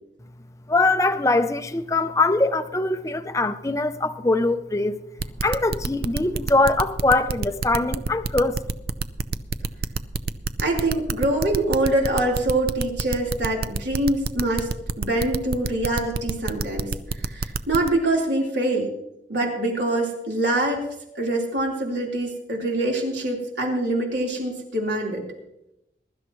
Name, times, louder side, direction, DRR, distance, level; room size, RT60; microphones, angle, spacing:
voice 1, 0.7-5.0 5.4-8.6, left 2 dB, 15° left, 0.5 m, -22 dB
sound 1, 5.2-17.9, right 4 dB, 55° right, 0.5 m, -27 dB
voice 2, 10.6-14.7 15.0-18.9 19.3-25.2, right 1 dB, 75° right, 3.8 m, -24 dB
21.5 x 12.0 x 3.1 m
head